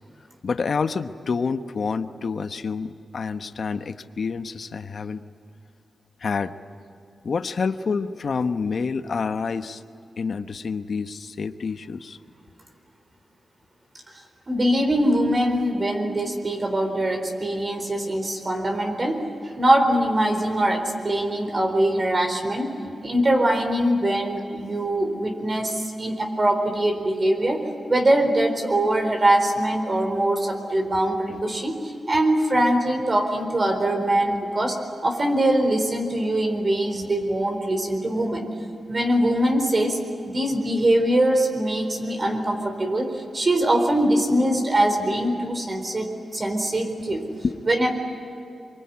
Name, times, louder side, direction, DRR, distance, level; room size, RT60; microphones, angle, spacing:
voice 1, 0.4-5.2 6.2-6.5 7.2-9.8 10.2-12.2 31.3-31.4 47.4-47.6, left 5 dB, 60° left, 9 dB, 1.1 m, -28 dB
voice 2, 14.5-19.2 19.6-22.7 23.0-27.6 27.9-38.5 38.9-40.0 40.3-47.2 47.7-47.9, right 1 dB, 40° right, 3 dB, 4.2 m, -22 dB
25.0 x 23.5 x 9.6 m, 2.7 s
cardioid pair, 80°, 0 cm